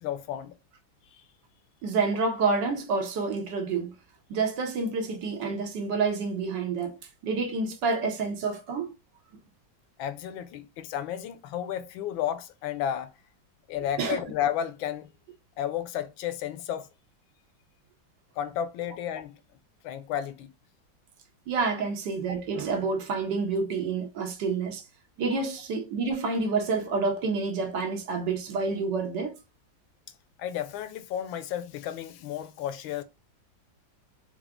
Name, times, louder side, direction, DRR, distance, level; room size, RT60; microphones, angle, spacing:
voice 1, 0.0-0.5 1.1-1.2 10.0-13.1 13.7-15.1 15.6-16.9 18.3-19.4 19.8-20.5 25.3-25.4 30.4-33.0, left 10 dB, 90° left, 1.4 m, -32 dB
voice 2, 1.8-3.9 4.3-7.0 7.2-8.9 14.0-14.2 21.5-24.8 25.2-29.3, right 4 dB, 70° right, 1.4 m, -28 dB
4.6 x 2.2 x 3.5 m
omnidirectional pair, 2.1 m